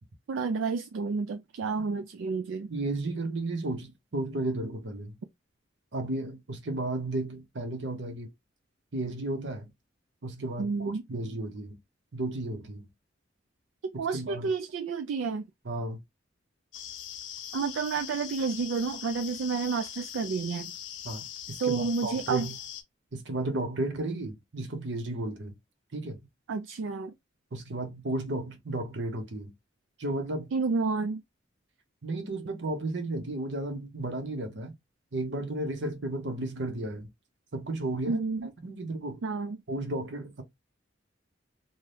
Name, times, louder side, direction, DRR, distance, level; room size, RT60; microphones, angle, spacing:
voice 1, 0.3-2.7 10.6-11.0 14.0-15.5 17.5-20.7 21.6-22.5 26.5-27.1 30.5-31.2 38.1-38.5 39.2-39.6, right 4 dB, 85° right, 0.4 m, -30 dB
voice 2, 2.7-5.1 5.9-8.3 8.9-9.7 10.2-11.8 12.1-12.9 14.1-14.5 15.6-16.0 21.0-22.5 23.1-25.6 25.9-26.2 27.5-29.5 30.0-30.5 32.0-34.7 35.1-37.1 37.5-38.2 38.6-39.2 39.7-40.4, right 2 dB, 70° right, 0.8 m, -33 dB
sound 1, 16.7-22.8, left 10 dB, 80° left, 0.6 m, -41 dB
2.7 x 2.2 x 3.2 m
head